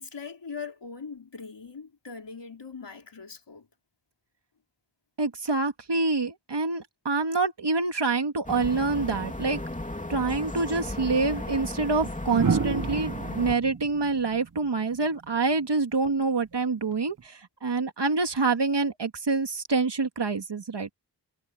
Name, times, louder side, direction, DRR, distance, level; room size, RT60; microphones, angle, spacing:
voice 1, 0.0-3.7, left 5 dB, 80° left, 4.4 m, -41 dB
voice 2, 5.2-9.6 10.1-20.9, right 3 dB, 75° right, 2.2 m, -26 dB
sound 1, 8.4-13.5, left 1 dB, 20° left, 2.9 m, -35 dB
sound 2, 10.9-11.0 12.3-15.4 16.9-17.2, right 5 dB, 50° right, 0.9 m, -31 dB
wide cardioid pair, 55°, 42 cm